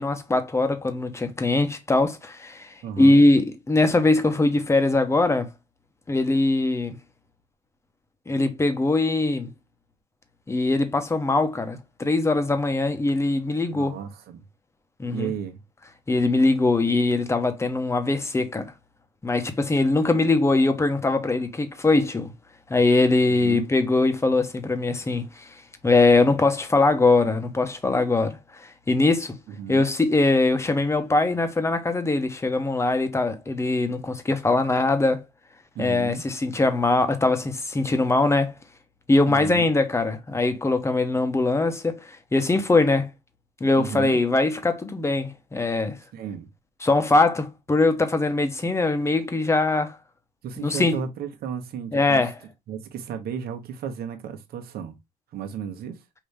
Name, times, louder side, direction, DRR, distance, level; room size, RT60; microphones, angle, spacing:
voice 1, 0.0-2.7 3.0-5.5 6.1-7.0 8.3-9.5 10.5-14.0 15.0-15.3 16.1-18.7 19.2-22.3 22.7-25.5 25.8-29.4 29.7-35.2 35.8-38.5 39.1-43.1 43.6-46.0 46.8-50.0 50.6-51.0 51.9-52.3, left 2 dB, 15° left, 0.9 m, -22 dB
voice 2, 2.8-3.2 13.7-14.4 15.1-15.6 23.3-23.7 29.5-29.9 35.7-36.2 39.3-39.7 43.7-44.2 46.1-46.5 50.4-52.2 52.7-55.0 55.3-56.0, right 7 dB, 65° right, 1.2 m, -34 dB
5.3 x 2.8 x 3.3 m
cardioid pair, 110°, 17 cm